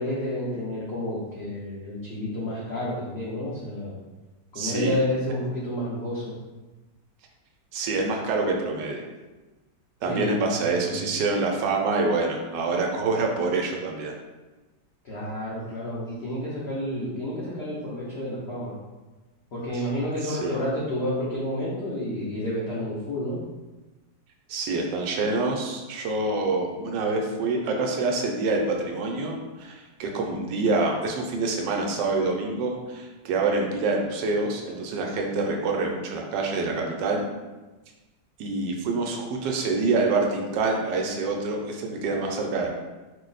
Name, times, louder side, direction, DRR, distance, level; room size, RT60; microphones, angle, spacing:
voice 1, 0.0-3.9 4.5-6.3 10.1-11.1 15.0-18.7 19.5-23.4, left 1 dB, 85° left, -7 dB, 0.5 m, -30 dB
voice 2, 4.6-5.0 7.7-9.1 10.0-14.1 19.7-19.8 20.2-20.6 24.5-37.3 38.4-42.7, right 3 dB, 80° right, 1 dB, 1.2 m, -26 dB
3.0 x 2.0 x 3.8 m, 1.2 s
omnidirectional pair, 1.9 m